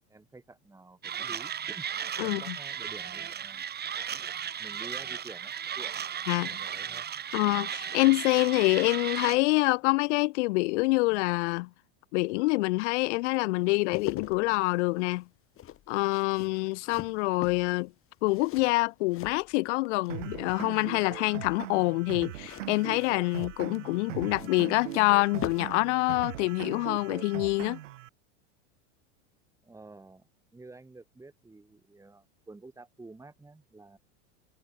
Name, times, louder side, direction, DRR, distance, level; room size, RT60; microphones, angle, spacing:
voice 1, 0.1-1.9 2.2-3.6 4.6-5.9 6.4-7.1 29.6-30.3 30.5-34.0, right 3 dB, 10° right, 4.2 m, -49 dB
Mechanisms, 1.0-9.4, right 8 dB, 25° right, 3.7 m, -36 dB
voice 2, 2.2-2.5 6.3-6.5 7.3-11.7 12.1-15.2 15.9-17.9 18.2-27.8, left 24 dB, 70° left, 0.5 m, -26 dB
sound 1, 13.6-20.1 20.4-21.0 22.3-25.8 26.1-26.3, left 12 dB, 35° left, 7.8 m, -43 dB
sound 2, 20.1-28.1, right 15 dB, 85° right, 1.9 m, -40 dB
supercardioid pair, 120°, 37 cm